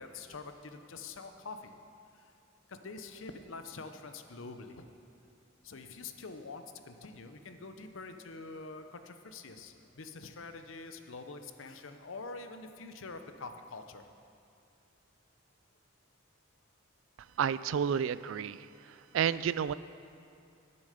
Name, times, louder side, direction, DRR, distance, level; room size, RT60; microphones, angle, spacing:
voice 1, 0.0-1.7 2.1-2.3 2.7-4.9 5.6-14.0 19.1-19.3, left 3 dB, 75° left, 7 dB, 0.8 m, -46 dB
voice 2, 17.4-19.7, right 8 dB, 75° right, 17 dB, 0.3 m, -31 dB
18.0 x 7.0 x 5.0 m, 2.5 s
head